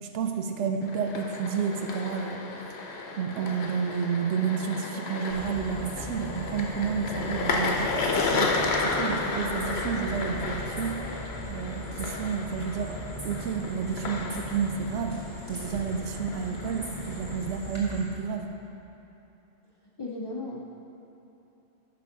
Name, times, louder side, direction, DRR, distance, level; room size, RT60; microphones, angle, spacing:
voice 1, 0.0-2.4 3.2-11.0 11.5-13.0 13.2-15.2 15.5-18.5, right 6 dB, 80° right, 4 dB, 0.9 m, -30 dB
sound 1, 0.8-17.8, left 3 dB, 70° left, 0.9 m, -33 dB
sound 2, 5.3-18.0, right 1 dB, 25° right, 1.5 m, -39 dB
voice 2, 20.0-20.6, left 2 dB, 40° left, -3 dB, 0.3 m, -35 dB
6.7 x 5.1 x 5.1 m, 2.9 s
omnidirectional pair, 1.2 m